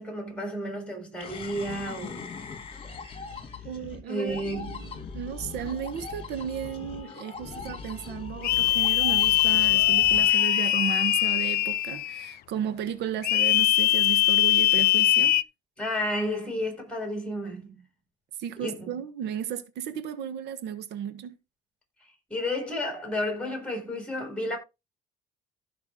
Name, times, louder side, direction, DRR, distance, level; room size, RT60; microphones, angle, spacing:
voice 1, 0.0-2.3 4.1-4.8 15.8-17.8 18.6-18.9 22.3-24.6, left 1 dB, 5° left, 7.2 m, -31 dB
sound 1, 1.2-11.8, left 5 dB, 35° left, 2.7 m, -40 dB
voice 2, 3.6-15.4 18.4-21.3, right 9 dB, 80° right, 1.4 m, -34 dB
sound 2, 8.4-12.3 13.2-15.4, left 15 dB, 65° left, 0.6 m, -22 dB
15.0 x 5.9 x 3.9 m
cardioid pair, 110°, 17 cm